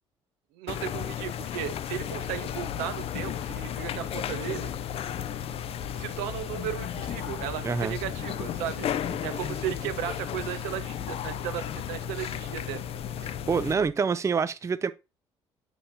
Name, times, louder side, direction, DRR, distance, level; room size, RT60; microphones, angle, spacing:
voice 1, 0.5-4.7 5.9-8.9 9.2-12.8, right 12 dB, 65° right, 0.7 m, -35 dB
sound 1, 0.7-13.7, left 10 dB, 45° left, 0.5 m, -34 dB
sound 2, 2.0-13.9, left 5 dB, 65° left, 1.0 m, -43 dB
voice 2, 7.6-8.0 13.5-14.9, right 5 dB, 20° right, 0.5 m, -26 dB
8.6 x 5.4 x 2.6 m
figure-of-eight pair, 45°, 14 cm